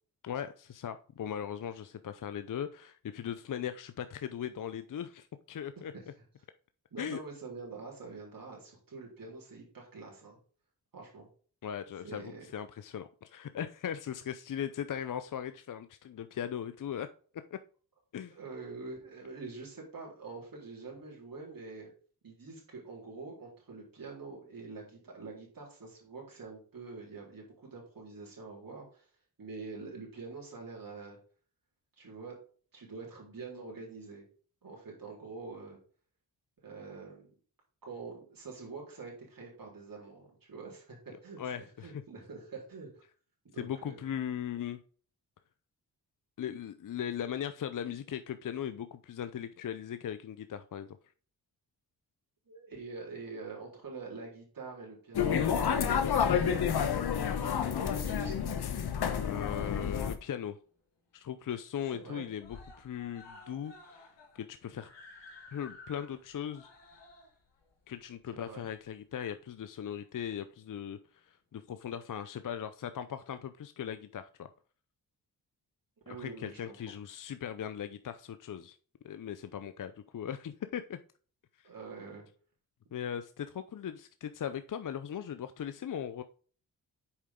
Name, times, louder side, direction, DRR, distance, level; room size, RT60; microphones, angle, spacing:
voice 1, 0.2-5.9 7.0-7.2 11.6-17.1 17.5-17.6 18.1-18.4 41.4-42.0 43.6-44.8 46.4-50.9 59.2-60.6 61.1-64.9 65.5-66.7 67.9-74.5 76.2-78.8 79.0-81.0 81.6-81.7 82.9-86.2, left 9 dB, 50° left, 10 dB, 0.6 m, -39 dB
voice 2, 6.9-10.4 10.9-11.3 12.0-12.5 18.3-21.9 22.2-29.1 29.4-31.2 32.0-32.4 32.7-34.3 34.6-35.8 36.6-37.3 37.8-41.4 41.8-43.0 43.4-44.0 52.5-56.7 57.4-58.4 61.9-62.3 68.3-68.7 76.1-76.8 81.6-82.2, right 4 dB, 50° right, -3 dB, 3.9 m, -45 dB
sound 1, 55.1-60.2, left 7 dB, 65° left, 1.0 m, -29 dB
Screaming, 60.1-60.4 60.8-60.9 61.2-61.3 61.6-62.1 62.4-69.2 70.0-70.1, left 3 dB, 85° left, 2.2 m, -54 dB
7.2 x 4.9 x 3.7 m, 0.42 s
supercardioid pair, 50°, 42 cm